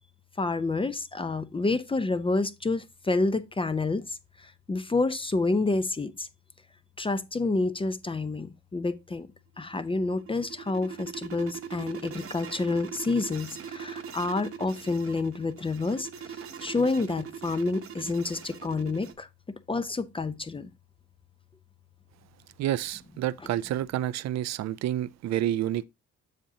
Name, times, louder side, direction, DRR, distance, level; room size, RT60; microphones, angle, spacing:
voice 1, 0.4-4.0 4.4-6.3 7.0-9.3 9.6-16.1 16.6-19.3 19.7-20.7, left 3 dB, 20° left, 0.5 m, -28 dB
sound 1, 9.7-19.1, right 7 dB, 45° right, 1.0 m, -41 dB
voice 2, 22.6-25.8, right 12 dB, 60° right, 0.5 m, -29 dB
7.4 x 6.9 x 2.8 m
cardioid pair, 90°, 30 cm